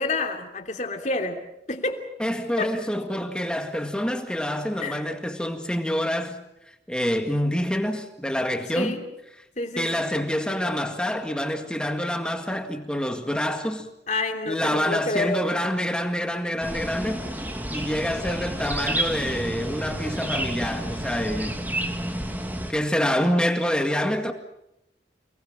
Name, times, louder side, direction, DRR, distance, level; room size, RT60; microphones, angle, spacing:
voice 1, 0.0-1.4 1.7-2.0 2.6-2.7 4.8-5.0 8.7-9.0 9.6-9.9 14.1-15.4, left 2 dB, 40° left, 3.1 m, -28 dB
voice 2, 2.2-6.4 6.9-9.0 9.8-13.9 14.5-17.3 17.7-21.6 22.7-24.3, equal, 5° left, 2.0 m, -26 dB
sound 1, 16.6-22.7, right 1 dB, 10° right, 2.3 m, -30 dB
29.0 x 20.0 x 7.4 m
head